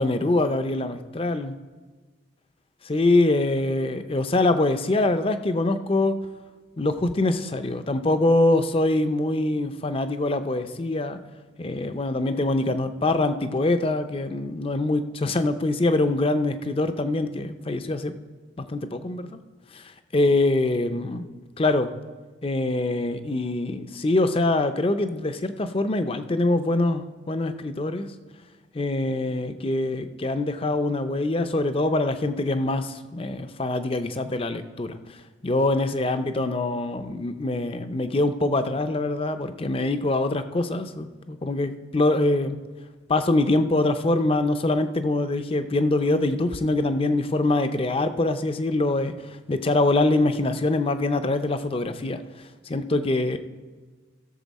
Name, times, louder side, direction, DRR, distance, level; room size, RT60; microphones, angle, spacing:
voice 1, 0.0-1.6 2.8-6.2 6.8-11.2 11.6-18.1 18.6-19.4 19.7-19.8 20.1-21.3 21.6-21.9 22.4-28.1 28.7-34.9 35.4-42.6 43.1-49.1 49.5-52.2 52.7-53.4, left 2 dB, 30° left, 10 dB, 0.5 m, -24 dB
16.0 x 6.8 x 4.1 m, 1.4 s
head